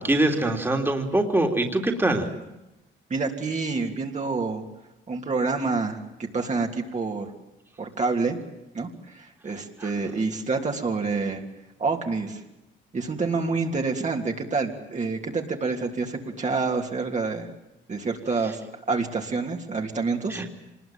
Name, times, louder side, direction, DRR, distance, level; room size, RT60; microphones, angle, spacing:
voice 1, 0.0-2.3 9.8-9.9 20.3-20.5, right 1 dB, 10° right, 3 dB, 3.2 m, -23 dB
voice 2, 3.1-4.6 5.1-7.3 7.8-8.4 8.7-11.4 11.8-12.4 12.9-17.5 17.9-18.6 18.9-20.4, right 4 dB, 35° right, 1 dB, 3.1 m, -27 dB
25.5 x 20.5 x 9.1 m, 0.96 s
cardioid pair, 90°, 20 cm